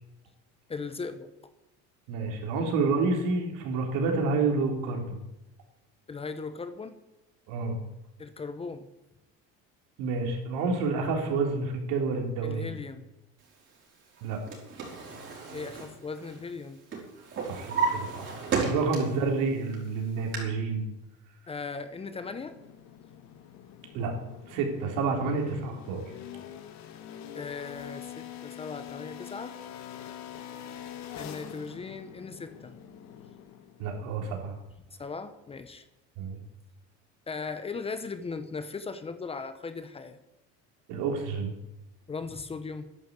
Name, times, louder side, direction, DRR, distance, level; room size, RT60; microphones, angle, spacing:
voice 1, 0.7-1.3 6.1-7.0 8.2-8.9 12.4-13.1 15.5-16.8 18.7-19.1 21.5-22.6 27.3-29.5 31.2-32.7 35.0-35.8 37.3-40.2 42.1-42.8, left 4 dB, 20° left, 11 dB, 0.9 m, -38 dB
voice 2, 2.1-5.2 7.5-7.8 10.0-12.7 14.2-14.4 17.4-20.8 23.9-24.1 24.5-26.0 33.8-34.6 36.2-36.4 40.9-41.5, right 4 dB, 75° right, 2 dB, 3.8 m, -29 dB
Drawer open or close, 14.2-16.6 16.9-19.3 19.7-20.4, right 5 dB, 40° right, 5.1 m, -33 dB
sound 1, 22.1-33.9, left 10 dB, 60° left, 1.8 m, -44 dB
11.0 x 10.0 x 8.4 m, 0.93 s
cardioid pair, 145°, 32 cm